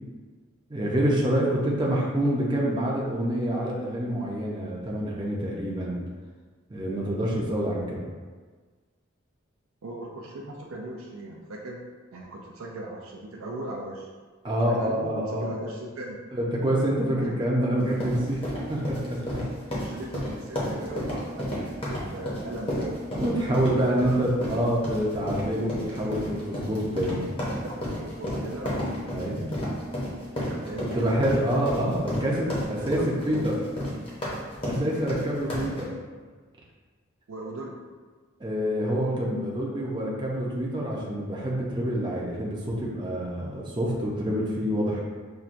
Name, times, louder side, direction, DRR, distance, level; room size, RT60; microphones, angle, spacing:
voice 1, 0.7-6.0 6.7-8.0 14.4-15.5 16.3-18.4 18.7-19.4 23.1-27.3 29.1-29.4 30.9-33.6 34.6-35.9 38.4-45.0, right 1 dB, 20° right, -4 dB, 0.5 m, -27 dB
voice 2, 9.8-11.8 12.1-14.1 14.6-16.2 17.2-17.4 19.7-23.0 23.5-24.4 25.1-25.4 25.9-26.4 27.4-28.9 30.4-31.7 32.8-33.5 37.3-37.8, right 2 dB, 80° right, -2 dB, 0.4 m, -39 dB
sound 1, 17.8-35.8, left 1 dB, 25° left, 0.8 m, -32 dB
5.7 x 2.2 x 2.5 m, 1.5 s
head